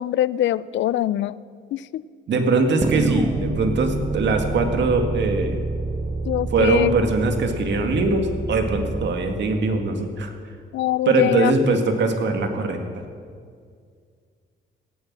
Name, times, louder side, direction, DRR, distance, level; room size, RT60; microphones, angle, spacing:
voice 1, 0.0-1.4 1.7-2.0 6.3-6.9 10.7-11.5, left 13 dB, 70° left, 19 dB, 0.4 m, -23 dB
voice 2, 2.3-5.6 6.5-10.3 11.1-12.8, right 3 dB, 65° right, 5 dB, 2.1 m, -21 dB
sound 1, 2.8-10.3, left 1 dB, 10° left, 2.4 m, -38 dB
sound 2, 2.8-9.1, right 4 dB, 25° right, 1.0 m, -28 dB
17.0 x 9.7 x 7.5 m, 2.1 s
cardioid pair, 90°, 20 cm